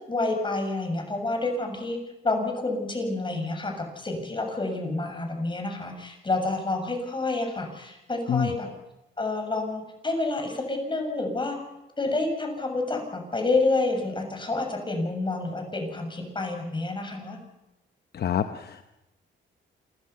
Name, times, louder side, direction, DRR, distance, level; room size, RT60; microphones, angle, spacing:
voice 1, 0.1-2.0 2.2-8.7 9.2-11.6 12.0-17.4, left 2 dB, 25° left, 3 dB, 6.9 m, -28 dB
voice 2, 18.1-18.8, left 8 dB, 55° left, 9 dB, 1.0 m, -27 dB
28.0 x 16.5 x 5.8 m, 0.96 s
cardioid pair, 90°, 20 cm